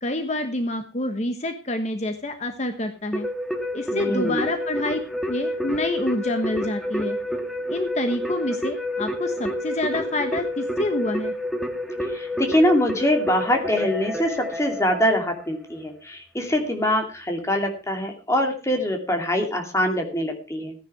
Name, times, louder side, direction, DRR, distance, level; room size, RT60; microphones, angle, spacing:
voice 1, 0.0-3.3 3.7-5.0 5.3-7.2 7.7-11.3, left 1 dB, 40° left, 7 dB, 1.2 m, -27 dB
Keyboard (musical), 3.1-15.6, left 1 dB, ahead, 1.6 m, -29 dB
voice 2, 3.9-4.5 12.0-20.7, left 1 dB, 15° left, 3 dB, 2.6 m, -24 dB
15.0 x 10.0 x 4.7 m, 0.34 s
head